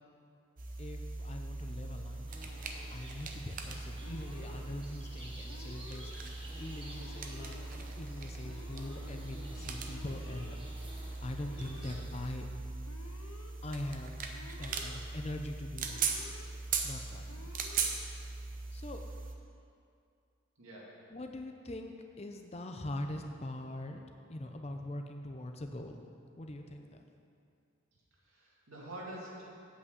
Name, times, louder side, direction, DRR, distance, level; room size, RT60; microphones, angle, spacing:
sound 1, 0.6-19.4, right 4 dB, 40° right, 0.7 m, -40 dB
voice 1, 0.8-2.3 2.9-10.6 11.2-12.5 13.6-14.2 14.6-16.1 16.8-17.5 18.4-19.1 21.1-24.0 24.3-26.0 26.4-27.0, left 1 dB, 30° left, 5 dB, 0.6 m, -42 dB
sound 2, 2.3-12.4, right 1 dB, 25° right, 1.3 m, -52 dB
Alarm, 4.0-4.7 5.5-6.1 6.9-7.6 8.4-9.1 9.9-10.6 11.4-12.0 12.8-13.5 14.3-15.0 15.8-16.5 17.3-17.9, left 3 dB, 90° left, 0.8 m, -53 dB
voice 2, 20.6-21.0 28.2-29.6, right 1 dB, 85° right, -5 dB, 2.4 m, -46 dB
8.1 x 5.9 x 7.9 m, 2.5 s
head